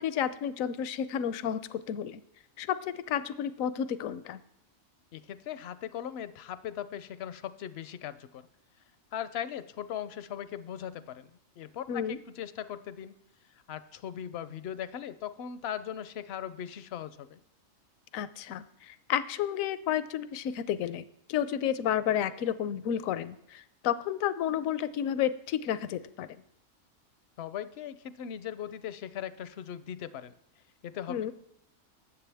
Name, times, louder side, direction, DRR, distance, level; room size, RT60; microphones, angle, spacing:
voice 1, 0.0-2.2 2.6-4.4 11.9-12.2 18.1-26.3 31.1-31.3, left 9 dB, 75° left, 14 dB, 1.0 m, -31 dB
voice 2, 5.1-8.4 9.1-11.3 11.6-13.1 13.7-17.4 27.4-30.3 30.8-31.3, left 9 dB, 60° left, 14 dB, 0.7 m, -39 dB
19.5 x 7.8 x 3.4 m, 0.77 s
omnidirectional pair, 1.5 m